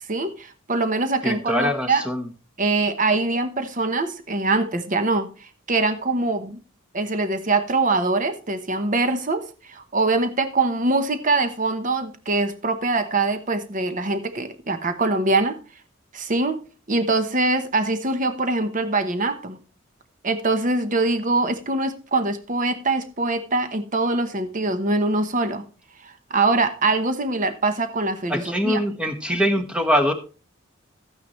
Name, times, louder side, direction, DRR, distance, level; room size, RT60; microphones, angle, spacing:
voice 1, 0.1-2.1 2.6-6.6 6.9-15.6 16.1-16.6 16.9-19.6 20.2-25.6 26.0-28.8, right 3 dB, 40° right, 1.0 m, -23 dB
voice 2, 1.2-2.3 28.3-30.1, equal, 5° right, 1.3 m, -23 dB
13.0 x 9.4 x 3.1 m
head